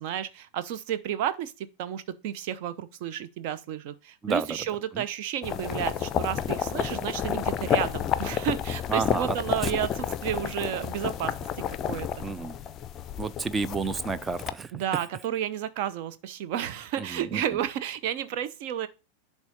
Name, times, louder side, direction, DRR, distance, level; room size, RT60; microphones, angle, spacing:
voice 1, 0.0-11.3 11.9-12.1 14.7-18.9, right 10 dB, 45° right, 0.8 m, -32 dB
sound 1, 5.4-14.5, left 9 dB, 30° left, 0.5 m, -30 dB
voice 2, 8.9-9.4 9.6-9.7 12.2-12.6 13.2-14.8 17.1-17.4, right 4 dB, 15° right, 0.5 m, -30 dB
10.5 x 3.7 x 5.3 m
figure-of-eight pair, 90°, 0 cm